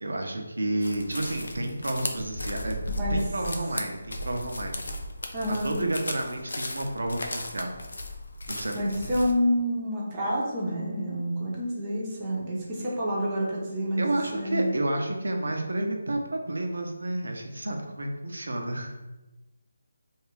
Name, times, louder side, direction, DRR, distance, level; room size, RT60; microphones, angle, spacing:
voice 1, 0.0-2.8 3.1-4.8 5.5-7.7 8.5-9.0 14.0-18.9, right 1 dB, 80° right, 3 dB, 0.6 m, -30 dB
sound 1, 0.8-9.3, left 1 dB, 75° left, 0.4 m, -36 dB
voice 2, 5.3-5.8 8.7-14.7, equal, 25° right, -4 dB, 0.7 m, -28 dB
2.6 x 2.4 x 3.1 m, 1.1 s
figure-of-eight pair, 160°, 0 cm